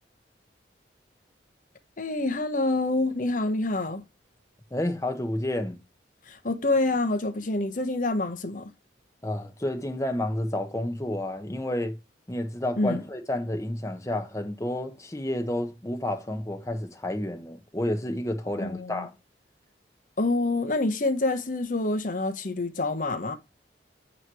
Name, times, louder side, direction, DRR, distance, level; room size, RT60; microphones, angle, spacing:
voice 1, 2.0-4.0 6.3-8.7 12.8-13.0 18.6-19.1 20.2-23.4, left 2 dB, 50° left, 1.0 m, -27 dB
voice 2, 4.7-5.8 9.2-12.0 12.3-19.1, left 1 dB, 20° left, 1.0 m, -30 dB
8.7 x 3.1 x 4.7 m
head